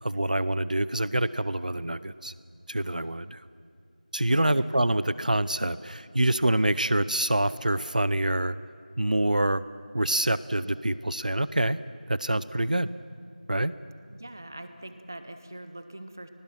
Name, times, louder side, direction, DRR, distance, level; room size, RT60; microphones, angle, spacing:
voice 1, 0.0-2.3 2.7-3.4 4.1-8.6 9.0-9.6 9.9-11.8 12.1-12.9 13.5-13.7, right 1 dB, 65° right, 16 dB, 0.8 m, -26 dB
voice 2, 4.3-4.7 14.1-16.3, right 1 dB, 20° right, 10 dB, 0.7 m, -43 dB
29.0 x 19.5 x 5.9 m, 2.3 s
figure-of-eight pair, 175°, 5 cm